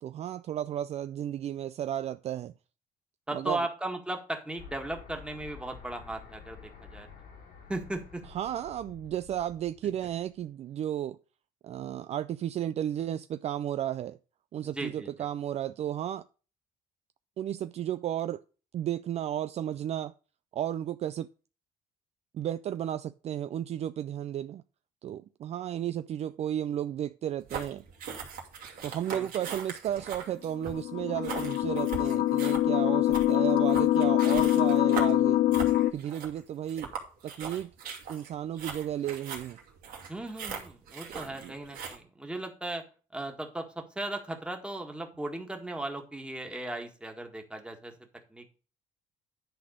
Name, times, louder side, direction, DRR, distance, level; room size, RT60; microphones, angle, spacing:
voice 1, 0.0-2.5 3.3-3.6 8.3-11.2 11.6-14.2 14.5-16.3 17.4-18.4 18.7-20.1 20.5-21.3 22.3-24.6 25.0-27.8 28.8-35.4 35.9-36.9 37.2-37.7 38.1-39.6 41.1-41.5, right 11 dB, 50° right, 0.4 m, -33 dB
voice 2, 3.3-7.1 7.7-8.2 14.7-15.1 28.8-29.3 40.1-42.9 43.1-47.9 48.3-48.4, right 1 dB, 5° right, 1.8 m, -37 dB
sound 1, 4.6-10.4, left 6 dB, 90° left, 3.3 m, -50 dB
sound 2, 27.4-42.0, right 6 dB, 75° right, 2.4 m, -40 dB
sound 3, 30.6-35.9, left 14 dB, 65° left, 0.6 m, -24 dB
10.5 x 4.1 x 6.5 m
cardioid pair, 115°, 14 cm